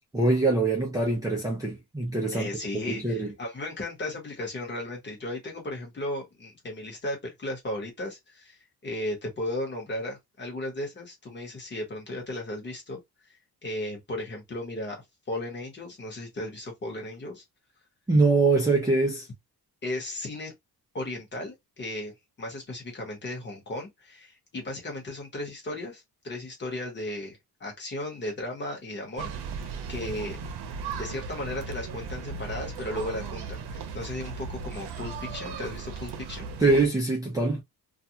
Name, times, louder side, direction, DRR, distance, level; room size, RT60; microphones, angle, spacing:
voice 1, 0.1-3.3 18.1-19.3 36.6-37.6, right 3 dB, 10° right, 0.5 m, -24 dB
voice 2, 2.3-8.6 8.8-13.0 13.6-15.0 15.3-17.4 19.8-20.5 20.9-29.3 29.9-30.4 31.0-36.5, left 1 dB, 30° left, 1.0 m, -35 dB
sound 1, 29.2-36.9, right 5 dB, 85° right, 0.7 m, -36 dB
2.4 x 2.2 x 2.7 m
wide cardioid pair, 175°, 39 cm